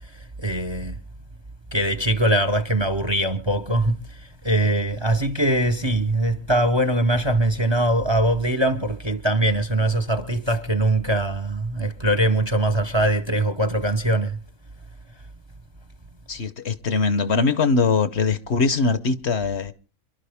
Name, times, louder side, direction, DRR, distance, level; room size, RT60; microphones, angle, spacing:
voice 1, 0.4-1.0 1.7-14.4, right 1 dB, 25° right, 0.8 m, -22 dB
voice 2, 16.3-19.7, left 4 dB, 55° left, 1.2 m, -22 dB
27.5 x 12.0 x 3.5 m
omnidirectional pair, 1.4 m